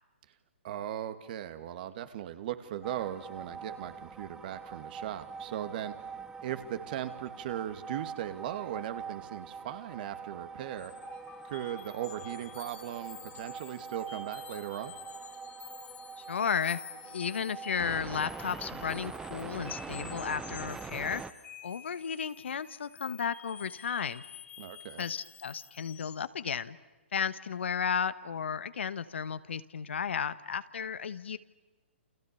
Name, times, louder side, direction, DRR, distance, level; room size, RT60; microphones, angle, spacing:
voice 1, 0.6-5.9 6.4-10.9 11.4-14.9 24.6-25.1, right 11 dB, 45° right, 9 dB, 2.3 m, -38 dB
sound 1, 2.8-21.3, right 5 dB, 10° right, 0.9 m, -44 dB
sound 2, 10.8-26.3, left 9 dB, 20° left, 2.5 m, -50 dB
voice 2, 16.2-16.8 17.1-21.2 21.6-24.2 25.0-26.8 27.1-31.4, left 7 dB, 65° left, 14 dB, 1.4 m, -34 dB
29.5 x 29.0 x 7.0 m, 1.2 s
figure-of-eight pair, 130°, 7 cm